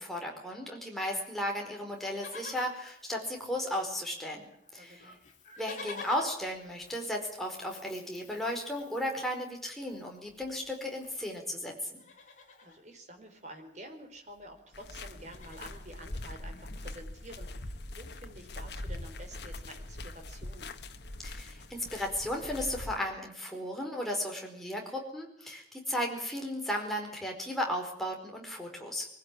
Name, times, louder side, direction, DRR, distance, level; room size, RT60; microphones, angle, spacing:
voice 1, 0.0-4.5 4.7-5.1 5.6-12.0 21.2-29.1, left 1 dB, ahead, 0 dB, 4.6 m, -35 dB
Livestock farm animals working animals, 1.9-3.9 4.2-4.3 4.5-11.5 11.9-12.8 14.0-14.1 14.3-14.6 14.9-15.9 16.5-16.6, left 4 dB, 45° left, 3.8 m, -50 dB
voice 2, 4.7-5.2 12.6-20.7, right 1 dB, 40° right, 3 dB, 4.3 m, -49 dB
sound 1, 14.7-23.0, left 1 dB, 70° left, 1.5 m, -42 dB
23.0 x 16.0 x 9.9 m, 0.69 s
head